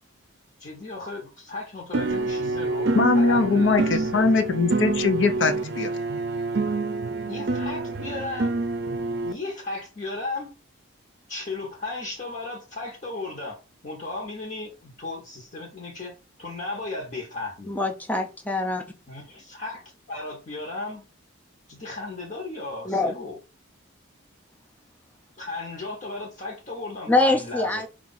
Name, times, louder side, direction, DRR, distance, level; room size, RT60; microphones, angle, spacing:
voice 1, 0.6-4.3 7.2-8.6 9.2-10.5 11.3-16.1 16.4-17.7 19.1-21.0 21.7-23.4 25.4-27.8, left 3 dB, 40° left, -2 dB, 1.0 m, -35 dB
sound 1, 1.9-9.3, right 3 dB, 55° right, 0.5 m, -27 dB
voice 2, 2.9-5.9, left 3 dB, 65° left, 7 dB, 0.7 m, -21 dB
voice 3, 17.7-18.8 22.9-23.1 27.1-27.9, left 2 dB, 10° left, 4 dB, 0.5 m, -24 dB
4.6 x 2.4 x 3.9 m, 0.31 s
head